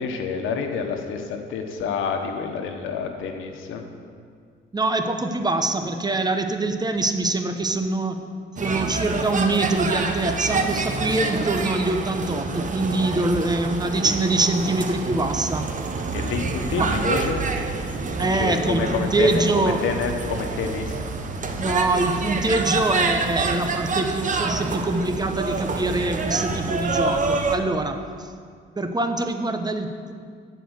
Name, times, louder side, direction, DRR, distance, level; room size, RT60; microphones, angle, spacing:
voice 1, 0.0-3.8 10.5-10.7 16.1-17.4 18.3-21.0, left 6 dB, 90° left, 4 dB, 1.2 m, -28 dB
voice 2, 4.7-8.3 8.6-15.7 16.8-16.9 18.2-19.8 21.6-28.3 28.8-30.1, right 2 dB, 20° right, 7 dB, 0.9 m, -24 dB
sound 1, 8.6-27.6, right 4 dB, 40° right, 1.1 m, -27 dB
13.0 x 5.0 x 8.1 m, 2.1 s
cardioid pair, 90°, 20 cm